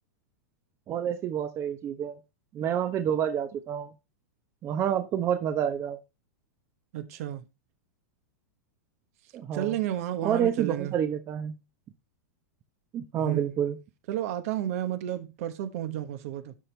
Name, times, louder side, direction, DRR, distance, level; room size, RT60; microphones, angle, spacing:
voice 1, 0.9-2.2 2.5-3.9 4.6-6.0 9.3-9.8 10.2-11.5 12.9-13.8, right 9 dB, 30° right, 0.8 m, -28 dB
voice 2, 6.9-7.4 9.5-10.9 13.1-13.4 14.1-16.6, right 12 dB, 60° right, 1.2 m, -32 dB
12.5 x 4.5 x 3.3 m
hypercardioid pair, 125°, 9 cm